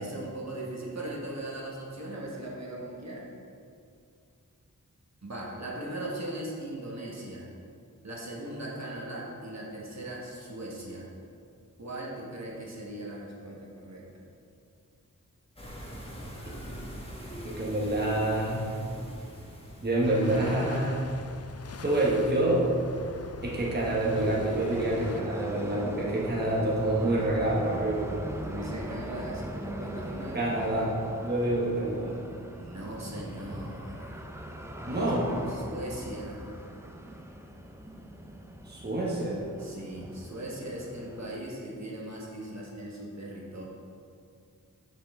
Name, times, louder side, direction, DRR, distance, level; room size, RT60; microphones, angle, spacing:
voice 1, 0.0-3.3 5.2-7.5 8.0-11.1 11.8-14.0 28.4-30.4 32.5-34.2 34.9-35.1 35.5-36.5 39.6-43.6, right 1 dB, 50° right, -3 dB, 1.4 m, -39 dB
sound 1, 15.6-20.5, equal, 15° left, 1.4 m, -42 dB
voice 2, 17.4-18.6 19.8-21.0 21.8-22.7 23.4-28.1 30.3-32.1 34.8-35.3 38.7-39.4, right 1 dB, 30° right, -4 dB, 1.1 m, -27 dB
sound 2, 20.0-25.2, left 5 dB, 50° left, 0.5 m, -42 dB
sound 3, 23.4-41.4, equal, 10° right, 0.6 m, -41 dB
7.6 x 5.8 x 3.6 m, 2.4 s
wide cardioid pair, 65°, 33 cm